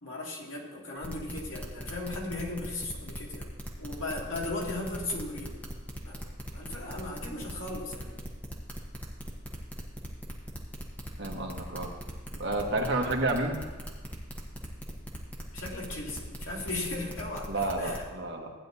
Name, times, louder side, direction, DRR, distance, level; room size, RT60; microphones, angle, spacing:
voice 1, 0.0-3.4 3.8-5.6 6.0-6.3 6.5-8.1 15.5-17.5 17.8-18.0, left 2 dB, 90° left, -2 dB, 2.2 m, -37 dB
sound 1, 1.0-18.0, equal, 10° left, 1.1 m, -40 dB
voice 2, 11.2-11.9 12.4-13.6 17.5-18.5, right 2 dB, 60° right, 1 dB, 1.3 m, -30 dB
15.5 x 9.5 x 2.7 m, 1.3 s
head